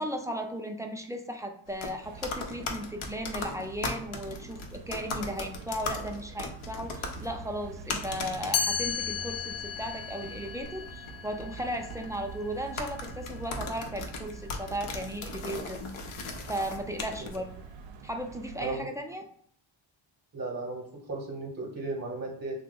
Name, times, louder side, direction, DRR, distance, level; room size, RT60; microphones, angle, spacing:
voice 1, 0.0-15.8 16.5-17.5 18.0-19.3, equal, 5° right, 3 dB, 0.3 m, -36 dB
sound 1, 1.7-17.4, left 3 dB, 85° left, 0.7 m, -39 dB
sound 2, 2.0-18.8, right 6 dB, 70° right, 0.5 m, -46 dB
Chime, 8.5-14.4, left 7 dB, 45° left, 0.5 m, -36 dB
voice 2, 20.3-20.8 21.1-22.6, right 2 dB, 35° right, 0 dB, 0.8 m, -35 dB
2.8 x 2.0 x 3.7 m, 0.64 s
cardioid pair, 70°, 49 cm